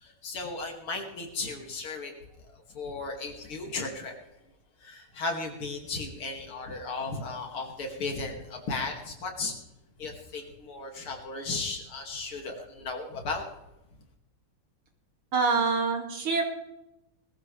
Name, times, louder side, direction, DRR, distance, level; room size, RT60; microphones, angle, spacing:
voice 1, 0.0-2.1 2.5-4.2 4.8-9.5 10.0-13.4, left 3 dB, 75° left, 2 dB, 3.3 m, -35 dB
voice 2, 15.3-16.4, right 4 dB, 90° right, 2 dB, 3.4 m, -25 dB
20.5 x 14.0 x 3.4 m, 0.89 s
omnidirectional pair, 2.4 m